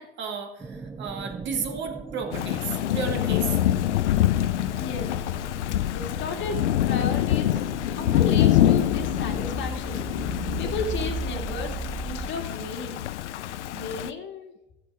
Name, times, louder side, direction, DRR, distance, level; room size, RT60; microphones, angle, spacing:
voice 1, 0.0-3.6, right 6 dB, 30° right, 4 dB, 2.2 m, -33 dB
sound 1, 0.6-12.3, right 3 dB, 5° right, 0.4 m, -37 dB
Thunder / Rain, 2.3-14.1, left 12 dB, 80° left, 0.7 m, -25 dB
voice 2, 4.8-5.2 5.9-7.6 8.0-10.0 10.6-11.8 12.0-13.0 13.7-14.5, left 4 dB, 30° left, 3 dB, 2.3 m, -33 dB
13.0 x 8.1 x 4.8 m, 0.93 s
hypercardioid pair, 115°, 35 cm